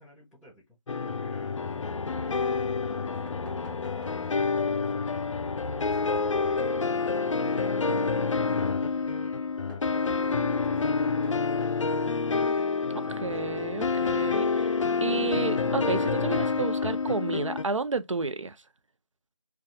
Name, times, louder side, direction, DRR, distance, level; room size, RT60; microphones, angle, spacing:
voice 1, 0.0-5.3 5.8-11.6 12.0-12.2 12.8-13.8, equal, ahead, 0.3 m, -52 dB
sound 1, 0.9-17.6, left 4 dB, 75° left, 0.4 m, -28 dB
sound 2, 2.9-4.7 6.1-8.2 9.7-11.9 13.3-15.2 16.0-16.1 17.5-17.6 17.9-18.0, right 2 dB, 45° right, 0.7 m, -52 dB
voice 2, 13.2-14.7 15.0-18.6, right 4 dB, 75° right, 0.5 m, -31 dB
2.3 x 2.3 x 2.6 m
figure-of-eight pair, 175°, 16 cm